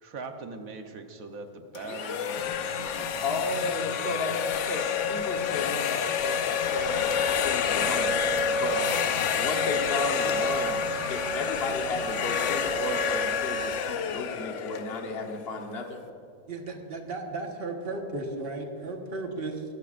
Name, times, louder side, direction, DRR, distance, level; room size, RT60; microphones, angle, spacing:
voice 1, 0.0-3.5, right 3 dB, 65° right, 5 dB, 1.4 m, -41 dB
sound 1, 1.7-15.6, left 6 dB, 60° left, 0.9 m, -28 dB
sound 2, 2.4-13.0, left 4 dB, 90° left, 1.8 m, -45 dB
voice 2, 3.2-7.1 7.4-8.2 8.5-8.9 9.4-10.8 11.0-16.0, left 2 dB, 45° left, 2 dB, 1.3 m, -33 dB
sound 3, 6.6-13.7, right 2 dB, 80° right, 2.1 m, -43 dB
voice 3, 16.5-19.6, right 2 dB, 40° right, 2 dB, 1.5 m, -35 dB
22.0 x 11.5 x 2.5 m, 2.6 s
omnidirectional pair, 1.6 m